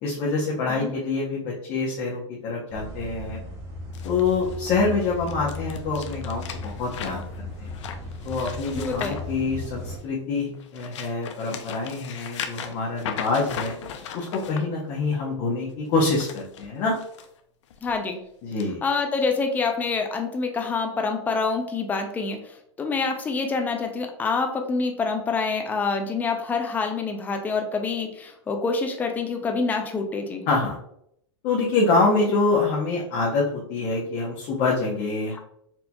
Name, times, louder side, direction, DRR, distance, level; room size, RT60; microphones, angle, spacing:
voice 1, 0.0-3.4 4.0-7.7 8.2-13.8 14.1-16.9 18.4-18.8 30.5-30.8 31.4-35.4, left 3 dB, 35° left, -4 dB, 0.8 m, -26 dB
sound 1, 2.7-10.0, left 1 dB, 15° right, 1.1 m, -36 dB
sound 2, 3.9-10.1 10.5-14.6 15.8-17.3 17.7-17.9 18.6-18.7, left 8 dB, 70° left, 0.5 m, -38 dB
voice 2, 8.7-9.2 17.8-18.2 18.8-30.4 35.3-35.4, left 4 dB, 10° left, 4 dB, 0.4 m, -26 dB
4.4 x 2.7 x 2.2 m, 0.73 s
supercardioid pair, 145°, 16 cm